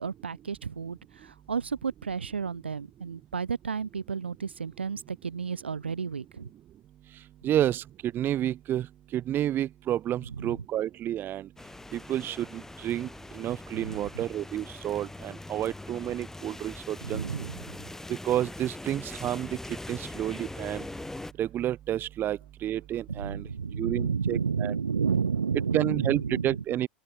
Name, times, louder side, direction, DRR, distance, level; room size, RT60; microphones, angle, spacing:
voice 1, 0.0-6.5 10.3-10.5 13.8-14.0 17.0-17.8 23.1-26.6, right 6 dB, 85° right, 1.5 m, -31 dB
voice 2, 7.4-7.8 8.1-8.9 9.1-11.5 11.9-13.1 13.3-17.2 18.1-19.5 19.9-20.8 21.4-23.5 23.8-24.7 25.7-26.9, right 12 dB, 35° right, 1.2 m, -30 dB
sound 1, 11.6-21.3, left 2 dB, 5° left, 6.4 m, -42 dB
open air
hypercardioid pair, 85°, 6 cm